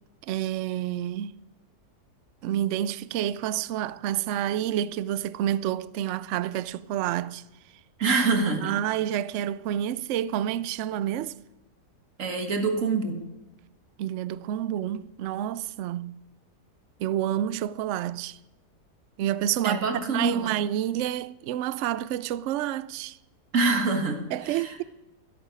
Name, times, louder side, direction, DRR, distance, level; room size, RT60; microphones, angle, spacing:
voice 1, 0.2-1.4 2.4-7.4 8.6-11.3 14.0-16.2 17.0-18.4 19.2-19.8 20.1-23.2 24.3-24.8, right 11 dB, 75° right, 0.6 m, -29 dB
voice 2, 8.0-8.7 12.2-13.2 19.6-20.5 23.5-24.7, right 3 dB, 50° right, 1.9 m, -26 dB
13.0 x 11.0 x 5.0 m
omnidirectional pair, 1.8 m